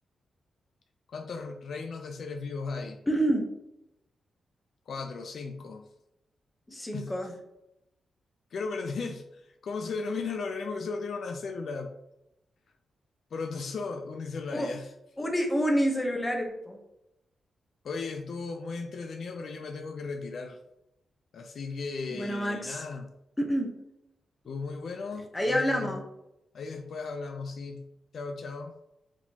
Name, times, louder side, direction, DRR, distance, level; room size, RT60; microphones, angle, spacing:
voice 1, 1.1-3.0 4.9-5.9 6.9-7.1 8.5-11.9 13.3-14.9 17.8-20.6 21.3-23.1 24.5-26.0 26.5-27.9 28.1-28.7, left 4 dB, 65° left, 5 dB, 0.4 m, -36 dB
voice 2, 3.1-3.5 6.7-7.4 14.5-14.7 15.2-16.8 22.1-22.8 23.4-23.8 25.3-26.0, equal, 15° left, 2 dB, 0.8 m, -28 dB
4.8 x 3.7 x 2.8 m, 0.86 s
wide cardioid pair, 120°, 0 cm